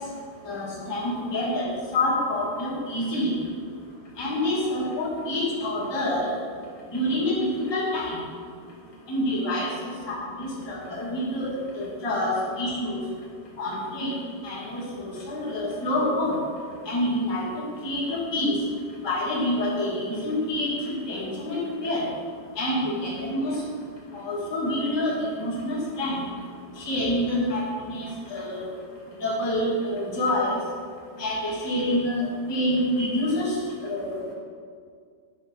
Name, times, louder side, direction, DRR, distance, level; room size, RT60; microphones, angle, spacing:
voice 1, 0.4-3.3 4.2-6.3 6.9-7.4 7.7-8.2 9.1-9.7 10.1-13.0 13.6-14.1 14.4-16.4 16.8-18.5 19.0-22.1 22.5-23.6 24.1-26.2 26.8-28.6 29.2-30.6 31.2-34.2, left 1 dB, 25° left, -7 dB, 0.6 m, -27 dB
10.5 x 5.3 x 5.7 m, 2.1 s
omnidirectional pair, 4.9 m